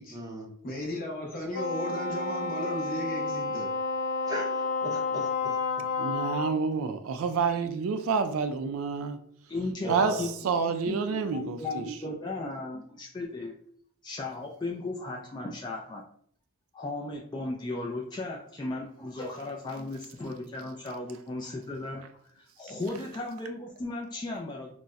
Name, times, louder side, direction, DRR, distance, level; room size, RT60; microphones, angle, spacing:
voice 1, 0.1-0.5 4.2-5.6 9.8-10.3, right 1 dB, 15° right, 0.6 m, -37 dB
voice 2, 0.6-3.8, equal, 40° left, 0.8 m, -35 dB
Wind instrument woodwind instrument, 1.5-6.6, left 4 dB, 80° left, 0.5 m, -30 dB
voice 3, 6.0-9.2 9.9-11.8, right 5 dB, 80° right, 0.3 m, -28 dB
voice 4, 9.5-10.3 10.6-13.5 14.0-16.0 16.7-22.0 22.3-24.8, left 2 dB, 20° left, 0.3 m, -36 dB
3.9 x 2.0 x 2.3 m
head